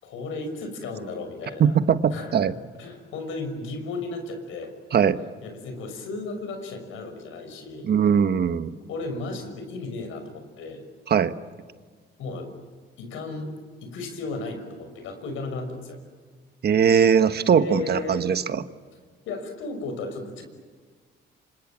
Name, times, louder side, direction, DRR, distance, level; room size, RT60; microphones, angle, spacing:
voice 1, 0.0-1.8 2.1-4.7 5.4-7.9 8.9-10.8 12.2-12.5 13.0-13.5 13.8-16.0 17.5-18.3 19.3-20.4, left 3 dB, 90° left, 6 dB, 6.0 m, -34 dB
voice 2, 1.6-2.5 4.9-5.2 7.8-8.7 11.1-11.3 16.6-18.6, right 7 dB, 55° right, 11 dB, 1.4 m, -20 dB
28.5 x 26.0 x 7.5 m, 1.6 s
cardioid pair, 90°, 20 cm